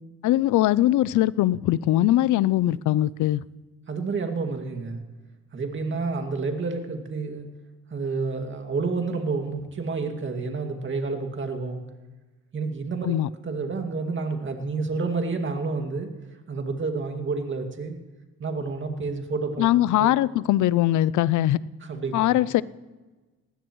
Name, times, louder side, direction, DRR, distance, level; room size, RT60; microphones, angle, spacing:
voice 1, 0.2-3.4 13.0-13.3 19.6-21.6 22.1-22.6, left 14 dB, 75° left, 20 dB, 0.5 m, -21 dB
voice 2, 3.9-5.0 5.5-7.5 7.9-11.8 12.5-13.2 13.4-16.1 16.5-18.0 18.4-19.7 20.0-20.1 21.8-22.5, right 4 dB, 40° right, 4 dB, 2.2 m, -29 dB
20.0 x 15.0 x 3.1 m, 1.2 s
cardioid pair, 90°, 30 cm